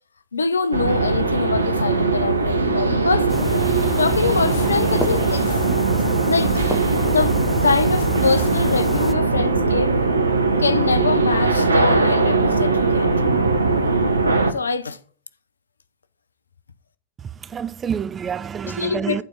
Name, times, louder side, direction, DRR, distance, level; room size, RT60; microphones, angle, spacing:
voice 1, 0.3-3.3 4.0-5.5 6.2-6.6 7.0-10.0 10.6-13.1 13.6-13.9 14.5-15.0 18.8-19.2, left 4 dB, 75° left, 0.6 m, -24 dB
sound 1, 0.7-14.5, right 3 dB, 75° right, 0.8 m, -20 dB
sound 2, 3.3-9.1, left 1 dB, 10° left, 0.7 m, -30 dB
voice 2, 17.2-19.2, right 7 dB, 20° right, 0.4 m, -28 dB
8.8 x 4.5 x 5.6 m
figure-of-eight pair, 90°, 0 cm